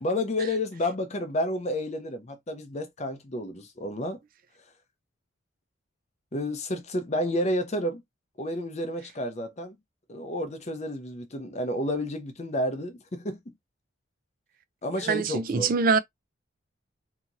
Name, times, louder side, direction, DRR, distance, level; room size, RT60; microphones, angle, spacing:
voice 1, 0.0-4.2 6.3-8.0 8.4-9.8 10.1-13.4 14.8-15.7, left 1 dB, 35° left, 0.6 m, -30 dB
voice 2, 15.0-16.0, right 5 dB, 45° right, 0.4 m, -24 dB
2.8 x 2.5 x 2.8 m
head